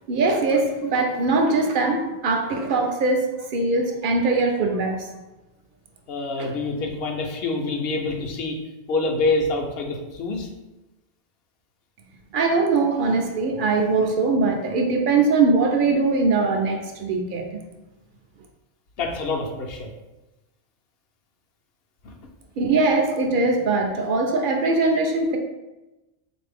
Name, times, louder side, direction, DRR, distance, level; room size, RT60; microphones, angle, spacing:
voice 1, 0.1-3.2 3.5-5.1 6.4-6.5 12.3-17.6 22.6-25.4, right 3 dB, 55° right, 2 dB, 0.6 m, -21 dB
voice 2, 6.1-8.6 8.9-10.5 19.0-19.9 22.0-22.1, left 3 dB, 60° left, 1 dB, 0.8 m, -26 dB
3.9 x 2.6 x 3.4 m, 1.0 s
omnidirectional pair, 1.2 m